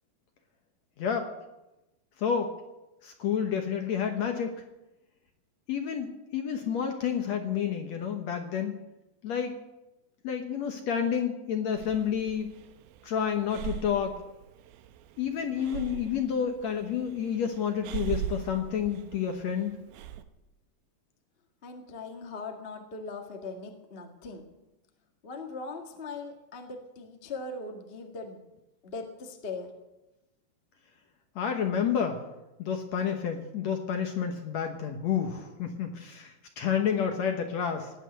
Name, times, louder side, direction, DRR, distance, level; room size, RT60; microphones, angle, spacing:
voice 1, 1.0-1.3 2.2-2.5 3.0-4.5 5.7-8.7 9.2-9.6 10.2-12.5 13.0-14.2 15.2-19.7 31.4-32.2 32.6-37.9, left 7 dB, 65° left, 5 dB, 1.9 m, -30 dB
Breathing, 11.8-20.2, right 10 dB, 85° right, 2.7 m, -40 dB
voice 2, 21.6-24.4 25.2-28.4 28.8-29.7, left 3 dB, 45° left, 3 dB, 0.8 m, -40 dB
18.0 x 9.1 x 8.0 m, 0.99 s
omnidirectional pair, 4.3 m